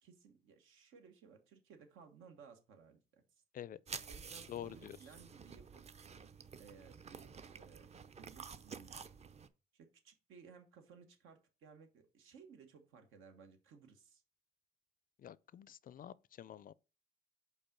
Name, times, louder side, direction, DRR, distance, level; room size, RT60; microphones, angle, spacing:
voice 1, 0.0-3.4 4.0-5.8 6.6-9.0 9.7-14.2, right 6 dB, 90° right, 1.4 m, -60 dB
sound 1, 3.9-9.5, right 6 dB, 35° right, 0.6 m, -51 dB
voice 2, 4.5-5.0 15.2-16.7, left 10 dB, 45° left, 0.4 m, -48 dB
5.3 x 4.1 x 6.0 m
cardioid pair, 90°, 20 cm